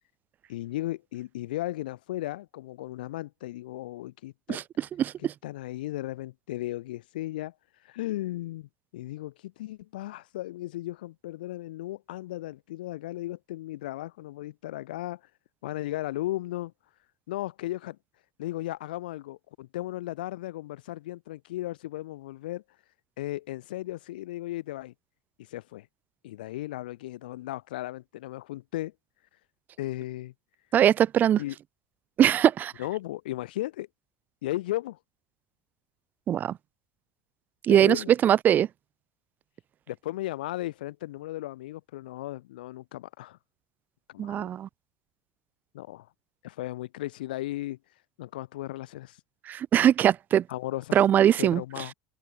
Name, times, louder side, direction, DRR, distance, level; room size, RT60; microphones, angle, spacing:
voice 1, 0.5-4.6 5.4-7.5 7.8-15.2 15.6-16.7 17.3-18.0 18.4-22.6 23.2-24.9 25.5-25.9 26.2-28.9 29.8-30.3 31.4-31.5 32.8-33.9 34.4-35.0 37.7-38.1 39.9-43.4 44.1-44.4 45.7-46.1 46.4-47.8 48.2-49.2 50.5-51.0 51.4-51.9, left 16 dB, 80° left, 4.8 m, -35 dB
voice 2, 4.5-5.3 30.7-31.4 32.2-32.7 36.3-36.6 37.6-38.7 44.2-44.7 49.5-50.4 50.9-51.6, right 10 dB, 40° right, 1.2 m, -21 dB
open air
hypercardioid pair, 100°, 5 cm